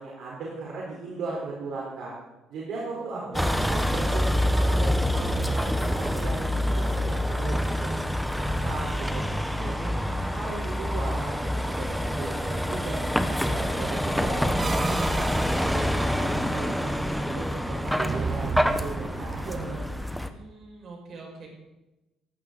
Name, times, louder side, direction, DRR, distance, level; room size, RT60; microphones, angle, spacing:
voice 1, 0.0-2.1 2.5-7.6 7.8-9.3 9.6-13.0 13.3-15.3 15.5-19.9, right 3 dB, 60° right, -3 dB, 4.1 m, -37 dB
voice 2, 2.9-3.8 13.7-14.2 20.2-21.5, right 3 dB, 45° right, 0 dB, 5.7 m, -45 dB
Vehicle, 3.3-20.3, equal, ahead, 0.9 m, -26 dB
sound 1, 14.6-16.2 18.0-19.6, right 5 dB, 25° right, 0.6 m, -35 dB
18.0 x 15.0 x 4.0 m, 1.0 s
cardioid pair, 150°, 0 cm